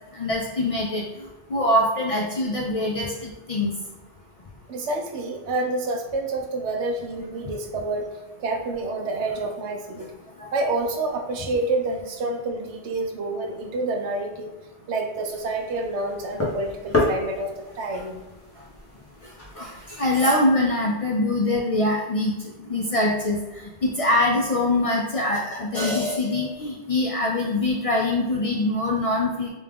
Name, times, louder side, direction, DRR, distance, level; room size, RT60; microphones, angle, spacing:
voice 1, 0.1-1.0 1.5-3.7 19.6-19.7 20.0-22.3 22.7-23.4 23.8-29.5, left 1 dB, 65° left, -2 dB, 0.3 m, -23 dB
voice 2, 4.7-8.1 8.4-10.1 10.5-14.6 14.9-17.5 17.8-18.2, right 2 dB, 75° right, 3 dB, 0.9 m, -28 dB
sound 1, 15.3-20.3, left 2 dB, 15° left, 0.5 m, -31 dB
3.4 x 2.3 x 3.4 m, 1.1 s
omnidirectional pair, 1.2 m